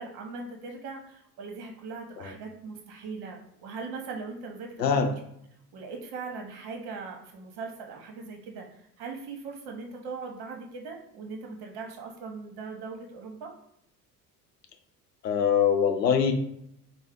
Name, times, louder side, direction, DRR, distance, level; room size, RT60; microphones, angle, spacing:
voice 1, 0.0-5.0 5.7-13.5, right 4 dB, 50° right, 3 dB, 1.1 m, -40 dB
voice 2, 4.8-5.1 15.2-16.3, left 7 dB, 85° left, 6 dB, 0.7 m, -23 dB
4.4 x 2.2 x 3.6 m, 0.73 s
figure-of-eight pair, 60°, 48 cm